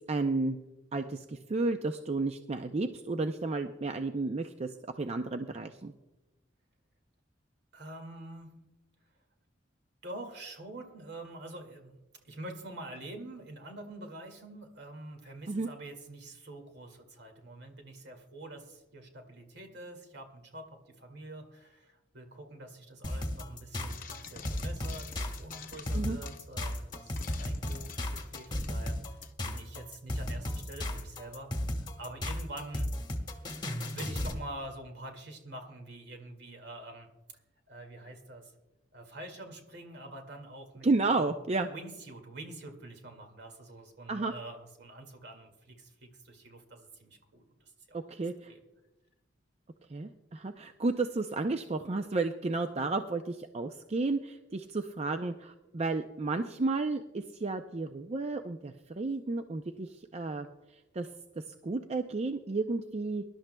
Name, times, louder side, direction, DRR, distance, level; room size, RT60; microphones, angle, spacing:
voice 1, 0.1-0.6 0.9-5.9 15.5-15.7 25.9-26.2 40.8-41.7 44.1-44.3 47.9-48.5 49.9-60.5 60.9-61.1 61.4-63.2, right 3 dB, 35° right, 6 dB, 0.5 m, -32 dB
voice 2, 7.7-8.5 10.0-12.0 12.2-29.2 29.5-32.9 33.9-37.1 37.7-38.5 38.9-40.9 41.2-41.3 41.7-48.0 48.5-48.6, right 1 dB, 65° right, 4 dB, 2.1 m, -46 dB
sound 1, 23.0-34.4, left 1 dB, 25° left, 1.3 m, -34 dB
Frying (food), 23.9-29.3, left 6 dB, 50° left, 0.7 m, -48 dB
24.0 x 11.5 x 2.2 m, 1.0 s
head